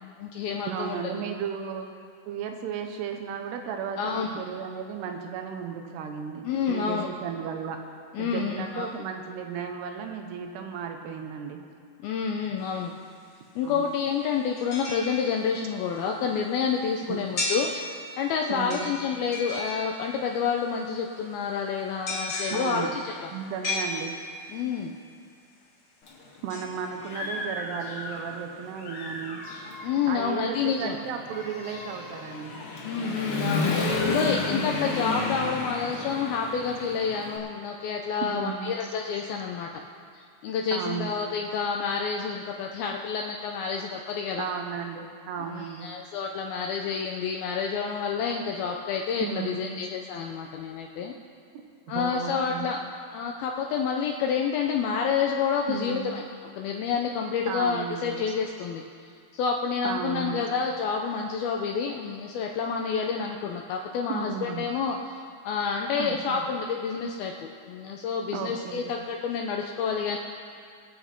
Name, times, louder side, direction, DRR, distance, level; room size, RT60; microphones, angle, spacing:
voice 1, 0.0-1.0 4.0-4.3 6.4-7.1 8.1-8.9 12.0-12.9 13.6-23.3 24.5-25.0 29.8-31.0 32.8-39.7 40.1-44.5 45.5-51.1 51.9-52.8 53.1-56.2 56.6-58.8 59.3-65.2 65.4-70.2, left 6 dB, 80° left, 1 dB, 2.3 m, -29 dB
voice 2, 0.6-1.9 2.3-7.8 8.2-11.6 13.6-13.8 17.1-17.3 18.5-18.9 22.5-22.9 23.3-24.1 26.4-29.4 30.1-32.5 38.2-38.8 40.7-41.1 44.4-45.9 49.2-49.8 51.9-52.7 55.7-56.1 57.5-58.3 59.8-60.5 64.1-64.7 66.0-66.5 68.3-68.9, right 7 dB, 75° right, 4 dB, 3.0 m, -34 dB
sound 1, 12.6-12.7 14.6-15.7 17.4-18.3 18.7-20.4 22.1-24.6 26.5-27.7 28.1-28.2, left 2 dB, 40° left, 2.4 m, -35 dB
Human voice / Motorcycle, 26.1-26.2 26.7-28.4 28.8-37.4, left 3 dB, 60° left, 1.4 m, -32 dB
23.5 x 7.9 x 4.5 m, 2.3 s
omnidirectional pair, 5.0 m